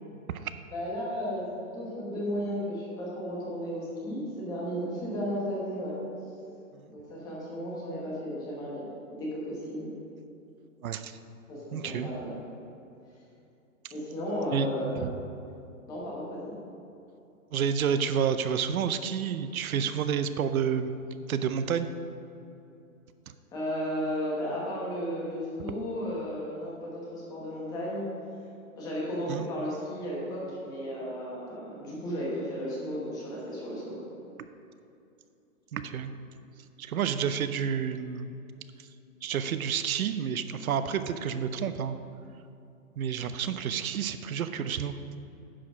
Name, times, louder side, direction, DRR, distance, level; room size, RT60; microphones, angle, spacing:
voice 1, 0.7-1.5 1.7-6.0 6.9-9.9 11.5-12.4 13.9-15.1 15.9-16.5 23.5-28.0 28.8-34.0, equal, 10° left, -5 dB, 1.1 m, -34 dB
voice 2, 10.8-11.1 11.7-12.1 14.5-14.7 15.0-15.1 17.5-20.9 21.3-21.9 23.3-23.4 29.3-29.5 34.4-34.5 35.7-36.1 36.8-38.3 39.2-42.0 43.0-45.0, right 7 dB, 80° right, 11 dB, 0.7 m, -29 dB
10.0 x 4.8 x 6.1 m, 2.7 s
hypercardioid pair, 170°, 42 cm